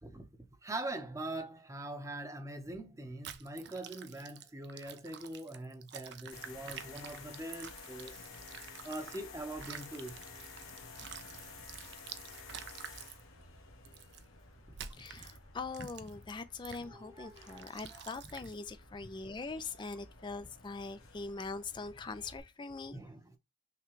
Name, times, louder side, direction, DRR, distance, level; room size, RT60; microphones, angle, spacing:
voice 1, 0.0-8.2 8.8-10.2 14.7-14.8 15.1-15.3 16.8-18.0 22.9-23.4, right 1 dB, 15° right, 0.7 m, -43 dB
sound 1, 3.2-9.2 9.5-13.2 13.9-14.2 14.8-15.4 15.7-16.2 16.7-16.8 17.4-18.6, right 9 dB, 55° right, 0.5 m, -49 dB
sound 2, 6.3-22.4, left 4 dB, 90° left, 1.6 m, -53 dB
voice 2, 15.0-23.0, left 4 dB, 20° left, 0.3 m, -42 dB
5.8 x 2.2 x 3.0 m
head